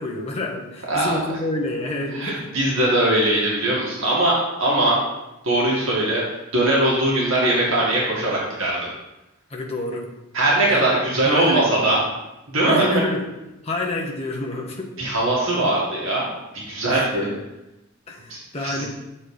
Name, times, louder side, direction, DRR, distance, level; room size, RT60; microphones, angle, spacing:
voice 1, 0.0-2.5 9.5-10.1 10.6-10.9 11.2-12.0 12.7-13.3 13.6-14.9 16.9-17.3 18.1-18.8, left 2 dB, 30° left, -2 dB, 1.2 m, -28 dB
voice 2, 2.1-5.0 5.4-6.2 6.5-8.9 10.3-12.0 12.5-12.9 15.0-16.3 16.7-17.3 18.3-18.9, right 1 dB, 70° right, -5 dB, 2.0 m, -20 dB
7.5 x 4.3 x 4.9 m, 0.95 s
head